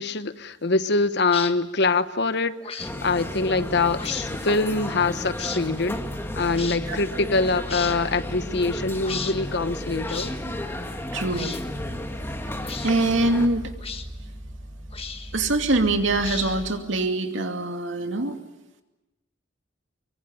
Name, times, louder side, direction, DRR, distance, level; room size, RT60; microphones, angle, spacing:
voice 1, 0.0-6.0 6.4-10.3, left 3 dB, 60° left, 12 dB, 1.1 m, -24 dB
sound 1, 1.2-1.5 2.6-2.9 3.9-4.3 5.4-5.6 6.5-6.8 7.6-8.0 9.0-9.4 10.1-10.3 11.3-11.6 12.6-12.9 13.8-14.1 14.9-15.4 16.2-16.7, left 6 dB, 30° left, 1.5 m, -34 dB
sound 2, 2.8-13.5, left 1 dB, 15° left, 2.1 m, -34 dB
sound 3, 2.8-16.7, equal, 20° right, 7.6 m, -40 dB
voice 2, 11.1-11.5 12.8-13.7 15.3-18.4, right 2 dB, 75° right, 5 dB, 2.6 m, -23 dB
25.0 x 23.5 x 9.1 m, 1.0 s
head